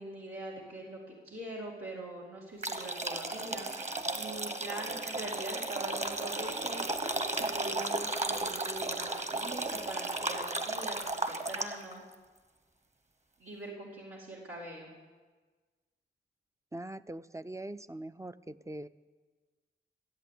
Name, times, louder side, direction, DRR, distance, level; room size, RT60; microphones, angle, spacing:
voice 1, 0.0-3.7 4.1-6.9 7.3-12.0 13.4-14.9, right 1 dB, 85° right, -5 dB, 2.5 m, -43 dB
sound 1, 2.6-11.9, right 2 dB, 35° right, 1.3 m, -34 dB
voice 2, 16.7-18.9, right 1 dB, 15° right, 13 dB, 0.5 m, -42 dB
14.0 x 8.1 x 8.3 m, 1.4 s
cardioid pair, 50°, 21 cm